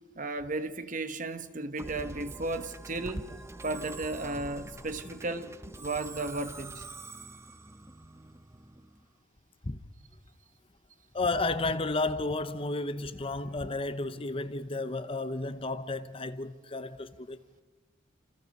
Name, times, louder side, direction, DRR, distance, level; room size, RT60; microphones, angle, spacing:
voice 1, 0.2-3.3 3.6-6.8, right 2 dB, 40° right, 1.2 m, -34 dB
Musical instrument, 1.8-9.1, right 2 dB, 15° right, 0.7 m, -45 dB
voice 2, 11.1-17.4, left 2 dB, 30° left, 0.8 m, -32 dB
28.5 x 27.5 x 5.4 m
head